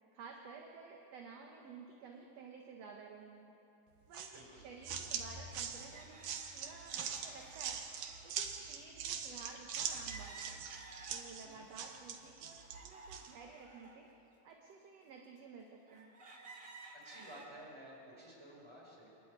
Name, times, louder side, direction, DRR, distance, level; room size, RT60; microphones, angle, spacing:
voice 1, 0.1-3.5 4.1-7.8 8.2-10.6 11.1-14.1 14.4-16.2, right 5 dB, 60° right, 1 dB, 2.2 m, -53 dB
sound 1, 4.1-13.3, right 7 dB, 90° right, 2.9 m, -42 dB
voice 2, 4.3-4.7 11.4-11.7 17.0-19.1, right 1 dB, 10° right, -3 dB, 5.4 m, -54 dB
sound 2, 4.5-4.6 5.7-8.4 9.8-11.6 12.0-14.0 14.6-14.7 15.4-15.5 15.9-17.5, right 3 dB, 30° right, 2.0 m, -55 dB
26.5 x 12.0 x 9.6 m, 3.0 s
omnidirectional pair, 3.7 m